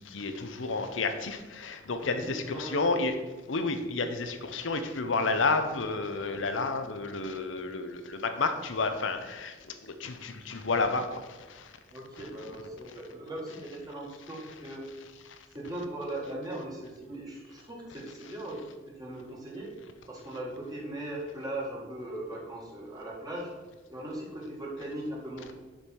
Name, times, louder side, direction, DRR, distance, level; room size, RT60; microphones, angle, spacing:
voice 1, 0.0-3.1 3.5-11.7 12.2-12.3 15.3-15.5, left 3 dB, 80° left, 8 dB, 0.7 m, -31 dB
voice 2, 2.0-2.9 11.9-14.9 15.5-18.6 18.9-19.7 20.1-23.5 23.9-25.5, right 1 dB, 20° right, -3 dB, 2.0 m, -39 dB
7.0 x 5.4 x 4.6 m, 1.3 s
head